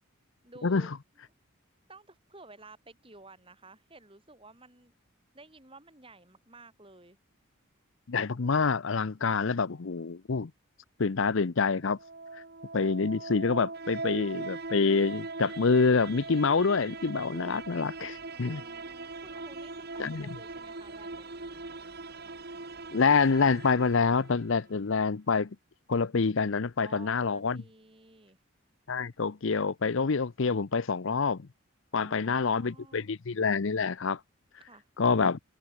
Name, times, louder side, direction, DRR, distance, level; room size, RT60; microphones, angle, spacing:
voice 1, 0.4-0.9 1.9-4.9 5.3-7.2 18.3-21.6 26.8-28.4 31.9-33.1 34.6-34.9, right 2 dB, 25° right, 5.6 m, -53 dB
voice 2, 8.1-10.5 11.0-12.0 12.7-18.6 20.0-20.3 22.9-25.5 25.9-27.6 28.9-31.5 31.9-34.2 35.0-35.4, left 4 dB, 60° left, 0.6 m, -26 dB
sound 1, 11.8-24.8, right 3 dB, 45° right, 1.8 m, -41 dB
head